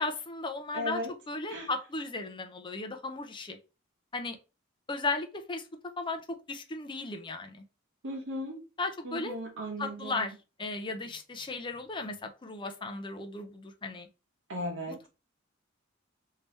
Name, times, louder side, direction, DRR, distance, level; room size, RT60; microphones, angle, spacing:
voice 1, 0.0-3.6 4.1-4.4 4.9-5.7 6.0-7.6 8.8-9.4 9.8-10.3 10.6-14.1 14.9-15.1, left 3 dB, 25° left, 0.5 m, -36 dB
voice 2, 0.7-1.1 1.5-1.7 8.0-8.6 9.0-10.3 14.5-14.9, equal, 65° right, 0.8 m, -36 dB
3.4 x 2.8 x 3.0 m
head